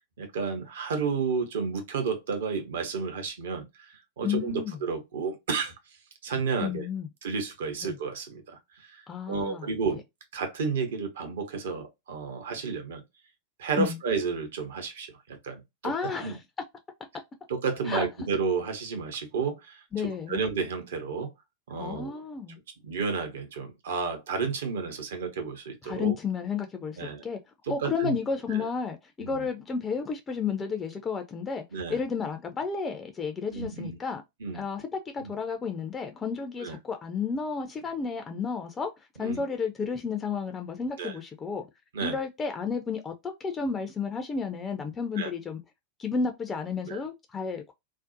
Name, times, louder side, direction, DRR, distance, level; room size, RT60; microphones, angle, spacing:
voice 1, 0.2-3.7 4.2-5.7 6.2-6.9 7.2-8.6 8.9-9.0 9.3-10.0 10.3-13.0 13.6-15.9 16.2-16.3 17.5-19.8 20.3-21.3 21.7-22.2 22.8-26.1 27.0-27.2 27.7-28.2 29.2-29.4 31.7-32.0 33.5-34.0 34.4-34.6 35.2-35.3 36.6-36.8 39.2-39.4 41.0-41.1 41.9-42.2 45.2-45.3 46.9-47.0, right 5 dB, 60° right, 0.7 m, -31 dB
voice 2, 4.2-4.8 6.6-7.1 7.8-8.0 9.1-10.0 13.8-14.0 15.8-16.4 17.9-18.1 19.9-20.4 21.8-22.6 25.8-27.4 27.7-31.6 31.9-34.2 34.5-38.9 39.2-41.6 42.0-45.6 46.0-47.7, left 5 dB, 20° left, 0.4 m, -32 dB
2.5 x 2.1 x 2.4 m
figure-of-eight pair, 90°, 0 cm